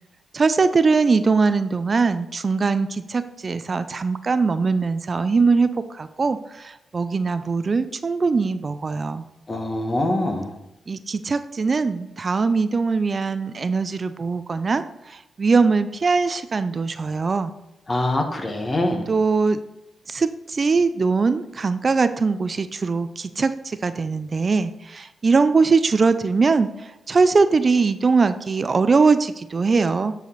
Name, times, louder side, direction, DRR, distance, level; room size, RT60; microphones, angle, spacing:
voice 1, 0.3-9.3 10.9-17.5 19.1-19.6 20.1-30.1, right 4 dB, 45° right, 12 dB, 0.4 m, -21 dB
voice 2, 9.5-10.5 17.9-19.1, left 1 dB, 35° left, 4 dB, 1.5 m, -24 dB
9.4 x 4.9 x 4.0 m, 0.91 s
supercardioid pair, 55°, 0 cm